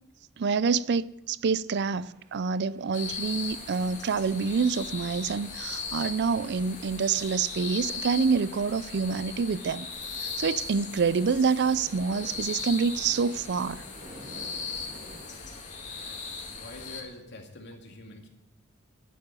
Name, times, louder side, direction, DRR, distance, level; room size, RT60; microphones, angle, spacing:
voice 1, 0.4-9.9 10.2-13.8, right 5 dB, 55° right, 0.4 m, -27 dB
sound 1, 1.7-15.4, equal, 40° right, 3.2 m, -54 dB
sound 2, 2.9-17.0, left 4 dB, 40° left, 2.4 m, -38 dB
voice 2, 15.9-18.3, left 2 dB, 60° left, 2.2 m, -46 dB
11.5 x 9.4 x 9.0 m
head